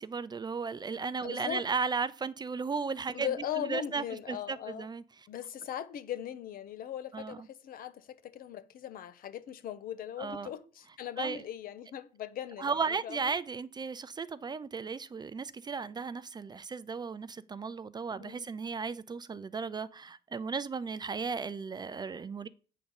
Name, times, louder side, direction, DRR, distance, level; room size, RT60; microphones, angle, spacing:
voice 1, 0.0-5.0 7.1-7.5 10.2-10.5 11.2-11.4 12.6-22.5, right 5 dB, 25° right, 0.5 m, -35 dB
voice 2, 1.2-1.6 3.1-4.9 5.3-13.2 18.2-18.5, left 10 dB, 60° left, 0.8 m, -39 dB
8.4 x 3.9 x 7.0 m
cardioid pair, 110°, 17 cm